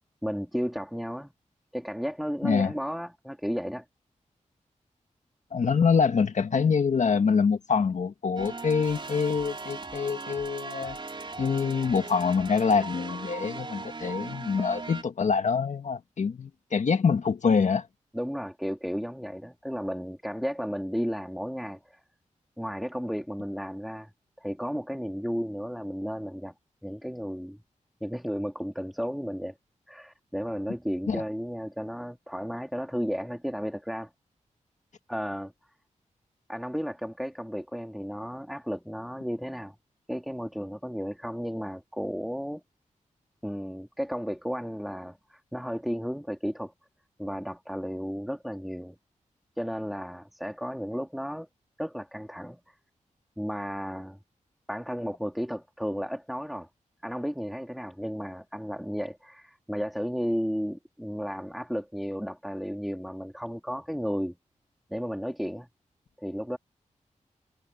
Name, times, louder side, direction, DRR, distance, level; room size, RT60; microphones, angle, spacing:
voice 1, 0.2-1.3 1.7-3.8 18.1-22.0 22.6-24.1 24.4-26.5 26.8-27.6 28.0-29.5 29.9-34.1 35.1-35.5 36.5-39.8 40.1-42.6 43.4-46.7 47.2-49.0 49.6-51.5 51.8-52.7 53.4-54.2 54.7-56.7 57.0-64.4 64.9-65.7 66.2-66.6, equal, ahead, 2.4 m, -33 dB
voice 2, 5.5-11.0 11.4-17.9 31.1-31.2, left 5 dB, 65° left, 1.6 m, -25 dB
sound 1, 8.4-15.0, right 3 dB, 40° right, 4.0 m, -38 dB
wide cardioid pair, 95°, 13 cm